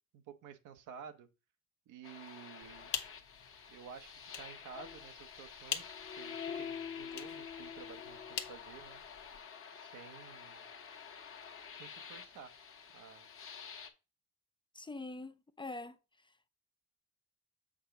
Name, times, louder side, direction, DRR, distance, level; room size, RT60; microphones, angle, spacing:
voice 1, 0.1-1.3 1.9-3.0 3.7-9.0 9.7-10.6 11.7-12.5 12.9-13.3, right 7 dB, 85° right, 1.0 m, -52 dB
sound 1, 2.0-13.9, left 7 dB, 45° left, 1.2 m, -48 dB
sound 2, 2.6-9.4, left 9 dB, 70° left, 1.0 m, -46 dB
voice 2, 14.7-16.0 16.2-16.3, left 2 dB, 15° left, 0.5 m, -44 dB
7.3 x 2.9 x 5.7 m
cardioid pair, 95°, 30 cm